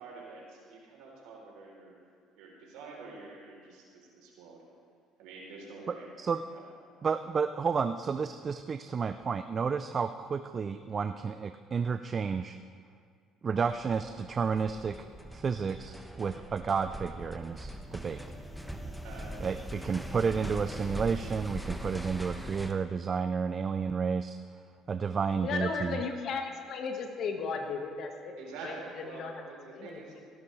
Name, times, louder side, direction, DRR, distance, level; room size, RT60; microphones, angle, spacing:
voice 1, 0.0-1.9 2.4-4.6 5.2-6.1 6.5-6.6 19.0-19.3 28.4-30.1, right 3 dB, 75° right, -2 dB, 3.5 m, -47 dB
voice 2, 5.9-6.4 7.0-12.6 13.4-15.0 15.3-18.2 19.4-24.4 24.9-26.0, right 5 dB, 40° right, 10 dB, 0.4 m, -31 dB
sound 1, 13.7-22.7, equal, ahead, 1.2 m, -41 dB
voice 3, 25.4-28.3 28.6-29.3 29.7-30.0, left 5 dB, 60° left, 4 dB, 1.6 m, -35 dB
16.5 x 12.5 x 3.3 m, 2.2 s
hypercardioid pair, 70°, 0 cm